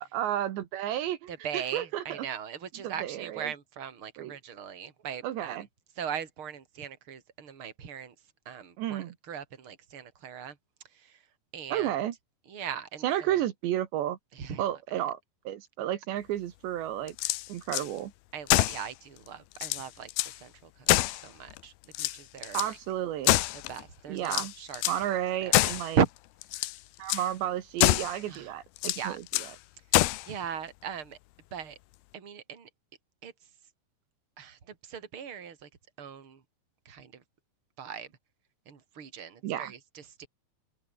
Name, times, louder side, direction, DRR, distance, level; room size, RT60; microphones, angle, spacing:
voice 1, 0.2-2.3 2.8-3.5 4.2-4.3 5.2-5.7 8.8-9.2 11.7-12.2 13.0-14.2 14.6-15.2 15.5-17.2 17.5-18.1 22.5-23.4 24.1-24.5 24.9-26.0 27.0-29.5 39.4-39.7, right 12 dB, 75° right, 3.8 m, -32 dB
voice 2, 1.3-5.6 6.0-8.1 8.5-10.6 11.0-11.2 11.5-11.9 12.5-13.4 14.3-15.0 18.3-20.1 20.4-20.5 20.8-21.7 22.0-22.8 23.7-24.8 25.4-25.6 25.9-26.1 28.3-28.5 29.0-29.2 30.3-31.2 31.5-31.8 32.1-32.7 33.2-33.3 34.4-35.7 36.0-36.4 36.9-37.2 37.8-38.1 38.7-40.3, right 7 dB, 30° right, 3.6 m, -38 dB
sound 1, 17.1-17.9 18.5-18.9 19.3-19.4 19.6-20.4 20.9-21.6 21.9-22.7 23.2-23.8 24.3-25.0 25.5-25.9 26.4-26.8 27.1-27.3 27.8-28.2 28.8-29.5 29.9-30.3, left 18 dB, 80° left, 2.3 m, -26 dB
omnidirectional pair, 5.1 m